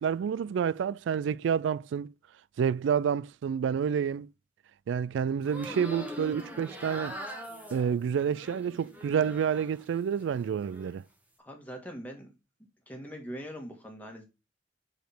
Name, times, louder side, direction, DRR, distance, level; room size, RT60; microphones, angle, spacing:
voice 1, 0.0-2.1 2.6-4.3 4.9-7.2 7.7-11.0, right 7 dB, 85° right, 0.3 m, -29 dB
sound 1, 5.4-9.8 10.2-10.9, equal, 10° right, 1.3 m, -42 dB
voice 2, 11.4-12.3 12.9-14.2, equal, 10° left, 1.8 m, -42 dB
5.1 x 5.0 x 5.9 m
head